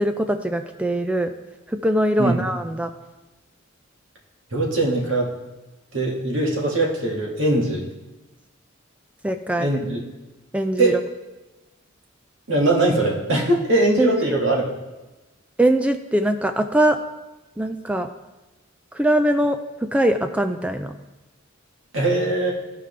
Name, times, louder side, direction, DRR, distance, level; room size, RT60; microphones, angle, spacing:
voice 1, 0.0-1.3 1.8-2.9 9.2-9.7 10.5-11.0 14.0-14.2 15.6-17.0 17.6-18.1 18.9-19.6 19.9-21.0, right 1 dB, 5° right, 7 dB, 0.3 m, -21 dB
voice 2, 4.5-5.3 5.9-7.8 9.6-10.0 10.8-11.0 12.5-14.7 21.9-22.6, right 2 dB, 65° right, -2 dB, 2.0 m, -21 dB
14.5 x 5.0 x 3.3 m, 1.1 s
head